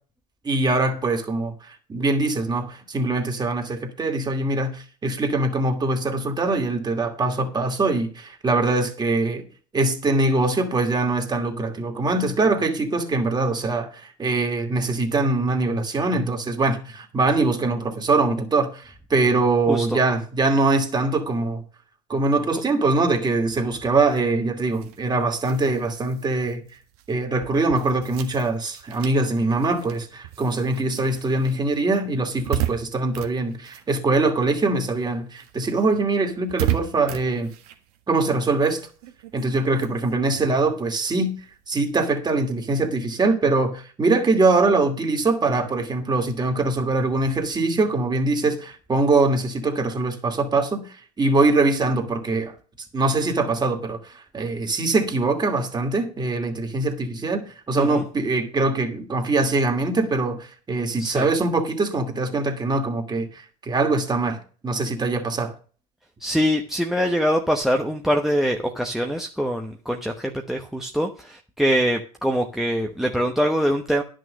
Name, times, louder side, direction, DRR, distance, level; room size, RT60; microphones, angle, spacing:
voice 1, 0.4-9.5 9.7-21.6 22.1-26.6 27.1-37.5 38.1-38.8 39.3-41.3 41.7-52.5 52.9-64.4 64.6-65.5, right 3 dB, 20° right, 2.5 m, -23 dB
voice 2, 19.7-20.0 57.8-58.0 61.0-61.3 66.2-74.0, equal, ahead, 1.0 m, -23 dB
sound 1, 24.7-34.6 34.9-41.8, right 13 dB, 75° right, 1.6 m, -35 dB
10.5 x 6.3 x 6.4 m
hypercardioid pair, 100°, 20 cm